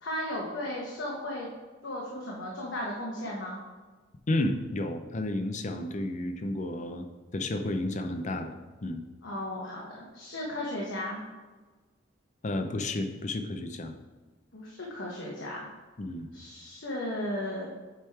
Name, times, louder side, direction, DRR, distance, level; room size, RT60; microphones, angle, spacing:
voice 1, 0.0-1.5 1.8-3.6 9.2-11.2 14.5-15.7 16.3-17.7, left 1 dB, 70° left, -3 dB, 1.1 m, -35 dB
voice 2, 4.3-7.0 7.3-8.5 8.8-9.0 12.4-13.9 16.0-16.3, left 1 dB, 40° left, 7 dB, 0.5 m, -31 dB
7.3 x 3.6 x 4.6 m, 1.3 s
head